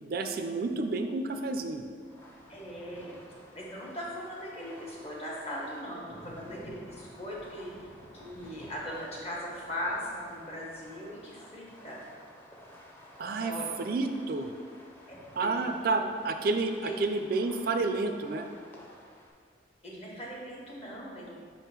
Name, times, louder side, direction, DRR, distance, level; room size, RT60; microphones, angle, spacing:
voice 1, 0.0-1.8 13.2-14.5 15.4-18.5, right 3 dB, 55° right, 6 dB, 0.4 m, -30 dB
Thunder, 1.4-11.1, left 1 dB, 65° left, 1.1 m, -55 dB
Fireworks, 2.0-19.3, left 1 dB, 10° left, 0.7 m, -53 dB
voice 2, 2.5-3.2 3.5-7.7 8.1-12.0 13.3-14.0 15.1-15.7 16.8-17.0 19.8-21.3, equal, 35° left, -4 dB, 1.3 m, -39 dB
5.3 x 3.6 x 5.7 m, 2.1 s
head